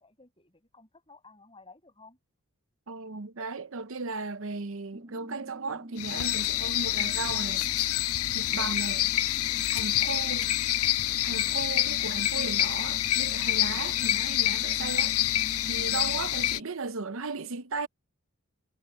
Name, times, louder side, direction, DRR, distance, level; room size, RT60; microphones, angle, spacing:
voice 1, 0.0-2.2 9.5-9.9 11.2-11.5 15.7-16.0, left 2 dB, 25° left, 7.1 m, -54 dB
voice 2, 2.9-7.6 8.3-9.1 9.7-10.5 11.2-15.4 15.7-17.9, right 4 dB, 65° right, 0.8 m, -36 dB
sound 1, 4.9-16.6, equal, 40° right, 1.4 m, -46 dB
sound 2, 6.0-16.6, left 14 dB, 80° left, 0.5 m, -27 dB
head